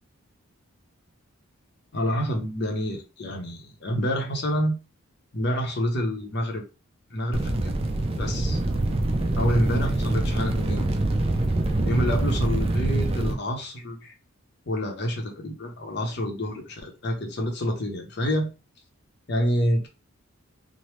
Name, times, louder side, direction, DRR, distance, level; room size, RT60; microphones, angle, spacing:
voice 1, 1.9-4.8 5.3-6.6 7.1-7.7 8.2-8.6 9.4-10.8 11.8-14.1 14.7-18.5 19.3-19.9, equal, 50° left, 0.7 m, -27 dB
sound 1, 7.3-13.3, right 2 dB, 25° right, 0.3 m, -25 dB
3.2 x 2.0 x 3.0 m
head